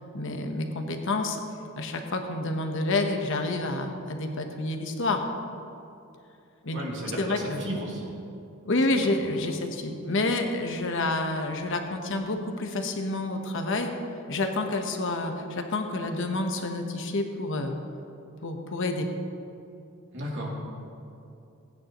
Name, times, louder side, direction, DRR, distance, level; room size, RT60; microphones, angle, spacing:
voice 1, 0.1-1.4 1.7-5.2 6.6-6.8 7.2-7.6 8.6-13.9 14.3-17.7 18.4-19.1, left 2 dB, 60° left, 4 dB, 1.1 m, -28 dB
voice 2, 6.7-8.1 9.0-9.3 20.1-20.7, equal, 60° right, -3 dB, 2.8 m, -34 dB
20.5 x 9.5 x 3.1 m, 2.7 s
head